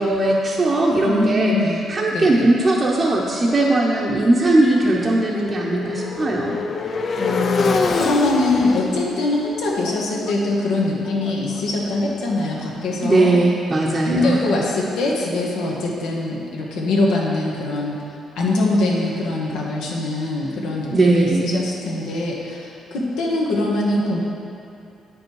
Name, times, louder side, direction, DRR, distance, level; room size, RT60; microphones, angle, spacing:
voice 1, 0.0-6.5 13.0-14.4 20.9-21.5, right 2 dB, 35° right, -4 dB, 0.8 m, -19 dB
voice 2, 1.0-1.8 2.1-2.5 7.2-7.7 7.9-13.3 14.0-18.0 18.4-24.2, left 2 dB, 90° left, -3 dB, 1.3 m, -23 dB
Motorcycle, 2.2-12.1, left 4 dB, 50° left, 0.5 m, -27 dB
8.4 x 5.2 x 4.7 m, 2.5 s
cardioid pair, 90°, 0 cm